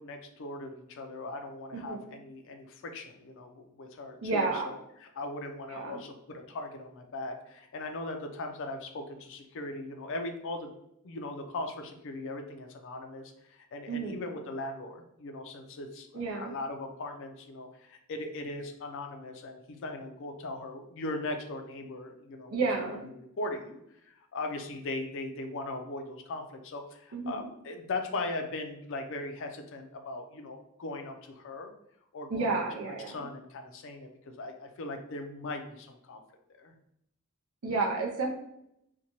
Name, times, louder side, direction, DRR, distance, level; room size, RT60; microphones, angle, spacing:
voice 1, 0.0-10.7 11.0-31.7 32.1-36.2 36.6-36.7, left 2 dB, 60° left, 5 dB, 0.4 m, -39 dB
voice 2, 4.2-4.7 5.7-6.0 13.9-14.2 16.1-16.5 22.5-23.0 27.1-27.5 32.3-33.2 37.6-38.3, right 3 dB, 70° right, 0 dB, 0.5 m, -31 dB
2.7 x 2.1 x 2.9 m, 0.78 s
head